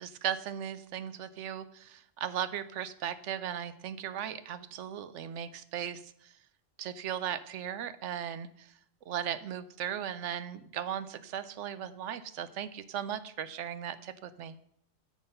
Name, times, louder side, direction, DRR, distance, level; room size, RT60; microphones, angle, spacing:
voice 1, 0.0-6.3 6.8-8.7 9.1-14.6, right 9 dB, 70° right, 13 dB, 0.9 m, -37 dB
9.3 x 6.1 x 5.5 m, 0.69 s
omnidirectional pair, 1.3 m